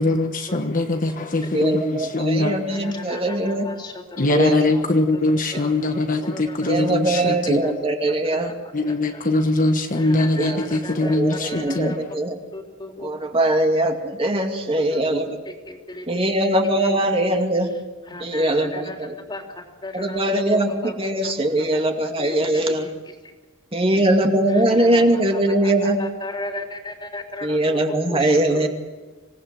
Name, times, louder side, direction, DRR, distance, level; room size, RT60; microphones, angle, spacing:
voice 1, 0.0-2.6 4.2-7.6 8.7-12.0, left 2 dB, 40° left, 1.2 m, -22 dB
voice 2, 1.5-3.7 4.3-4.6 6.7-8.5 10.4-10.6 11.0-12.4 13.0-15.3 16.1-17.7 18.2-19.1 19.9-22.9 23.7-26.0 27.4-28.7, right 1 dB, 25° right, 2.5 m, -21 dB
voice 3, 10.8-11.1 11.5-11.9 12.5-13.1 14.9-15.2 15.7-16.0 18.1-18.9 19.3-19.4 19.8-20.2 26.2-27.8 28.1-28.2, left 2 dB, 20° left, 3.5 m, -34 dB
26.0 x 18.5 x 7.7 m
head